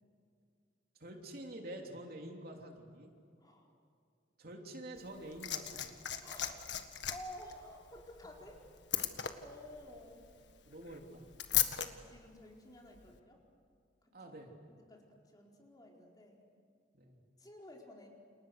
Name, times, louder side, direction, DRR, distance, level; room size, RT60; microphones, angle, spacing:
voice 1, 1.0-3.1 4.4-6.0 10.6-11.2 14.1-14.5 16.9-17.2, right 1 dB, 55° right, 1 dB, 3.3 m, -47 dB
Liquid, 5.0-11.9 13.0-13.1, left 11 dB, 75° left, 1.7 m, -38 dB
voice 2, 6.2-6.6 7.1-8.6 9.4-10.3 11.8-13.4 14.2-14.3 14.7-15.1 15.3-16.5 17.4-18.1, left 1 dB, 20° left, -1 dB, 4.4 m, -52 dB
30.0 x 28.5 x 6.6 m, 2.4 s
head